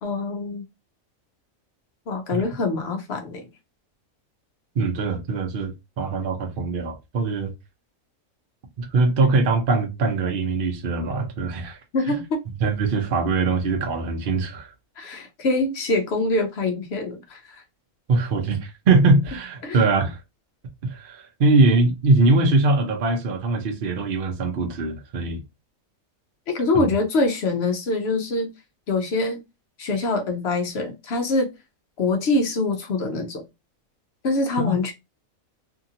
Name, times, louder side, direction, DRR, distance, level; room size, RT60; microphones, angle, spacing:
voice 1, 0.0-0.6 2.1-3.5 11.9-12.4 15.0-17.6 19.6-19.8 26.5-28.5 28.9-29.4 29.8-31.5 32.0-33.4 34.2-34.9, left 2 dB, 60° left, 0.8 m, -24 dB
voice 2, 4.8-5.7 6.0-7.5 8.8-11.8 12.1-12.2 12.6-14.7 18.1-20.2 20.9-25.4 26.7-26.9 34.6-34.7, right 3 dB, 50° right, 0.7 m, -22 dB
2.8 x 2.6 x 2.6 m
omnidirectional pair, 1.4 m